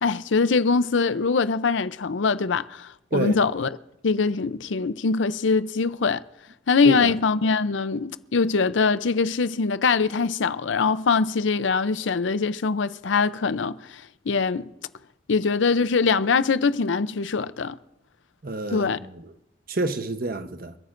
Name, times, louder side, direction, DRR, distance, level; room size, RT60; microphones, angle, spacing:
voice 1, 0.0-3.7 4.0-6.2 6.7-14.7 15.3-17.8 18.7-19.0, left 4 dB, 80° left, 0.6 m, -23 dB
voice 2, 3.1-3.4 6.8-7.1 18.4-19.3 19.7-20.8, right 2 dB, 50° right, 0.9 m, -28 dB
29.0 x 14.0 x 2.6 m
head